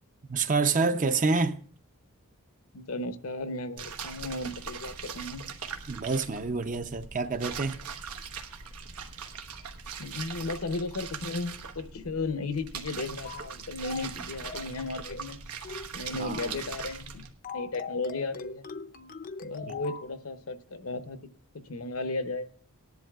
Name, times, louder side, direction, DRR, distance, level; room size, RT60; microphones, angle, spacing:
voice 1, 0.3-1.6 5.9-7.8 16.2-16.5 19.7-19.8, right 4 dB, 35° right, 0.6 m, -27 dB
voice 2, 2.7-5.5 10.0-15.4 15.9-17.3 17.5-18.7 19.4-21.2 21.7-22.5, left 3 dB, 70° left, 0.8 m, -35 dB
sound 1, 3.8-17.3, right 6 dB, 85° right, 1.1 m, -41 dB
sound 2, 13.2-13.5 13.8-14.1 14.4-14.7 15.0-15.3 15.6-15.9 16.2-16.5 16.8-17.1 17.4-20.1, left 5 dB, 40° left, 0.5 m, -41 dB
18.5 x 10.5 x 2.4 m
head